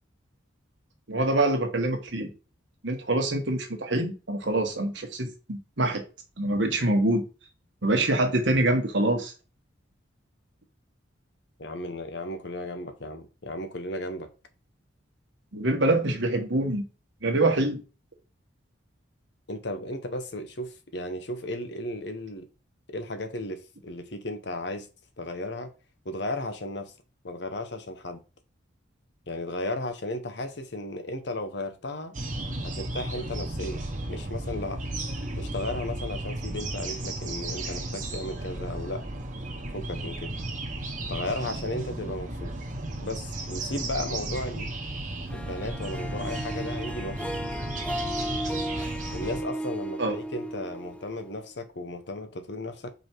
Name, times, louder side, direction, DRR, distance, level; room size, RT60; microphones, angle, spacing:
voice 1, 1.1-2.3 2.8-6.0 6.4-7.2 7.8-9.3 15.5-16.8 17.2-17.8 50.0-50.2, right 2 dB, 65° right, 1.6 m, -25 dB
voice 2, 11.6-14.3 19.5-22.5 22.9-24.9 25.2-25.7 26.0-26.9 27.2-28.2 29.3-32.2 32.6-34.8 35.4-39.0 39.7-40.3 41.1-42.5 43.0-44.7 45.3-47.2 49.1-52.9, left 1 dB, 55° left, 1.1 m, -35 dB
sound 1, 32.1-49.4, right 2 dB, 40° right, 1.4 m, -34 dB
Harp, 45.3-51.6, equal, 5° left, 0.3 m, -35 dB
5.3 x 4.8 x 4.7 m
head